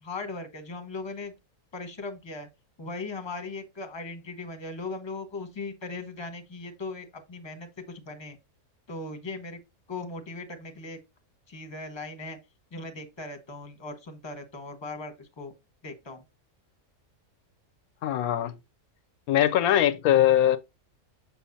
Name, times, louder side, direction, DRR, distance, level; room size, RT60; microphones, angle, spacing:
voice 1, 0.0-1.3 1.7-2.5 2.8-8.4 8.9-9.6 9.9-11.0 11.5-12.4 12.7-15.5 15.8-16.2, left 3 dB, 20° left, 1.0 m, -38 dB
voice 2, 18.0-18.5 19.3-20.6, left 11 dB, 80° left, 1.0 m, -21 dB
6.9 x 6.0 x 2.6 m
omnidirectional pair, 1.5 m